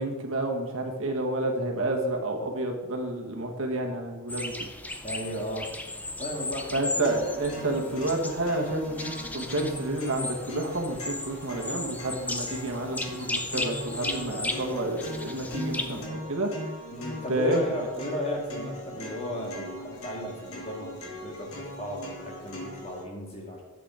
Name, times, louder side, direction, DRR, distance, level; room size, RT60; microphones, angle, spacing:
voice 1, 0.0-4.7 6.7-16.5 17.3-17.9, right 1 dB, 65° right, 2 dB, 1.5 m, -30 dB
sound 1, 4.3-16.1, left 2 dB, 5° left, 0.5 m, -36 dB
voice 2, 5.0-5.7 6.2-6.9 16.9-23.6, left 1 dB, 30° left, -1 dB, 2.0 m, -35 dB
sound 2, 7.0-23.0, left 1 dB, 70° left, 2.0 m, -40 dB
9.0 x 7.6 x 4.8 m, 1.2 s
head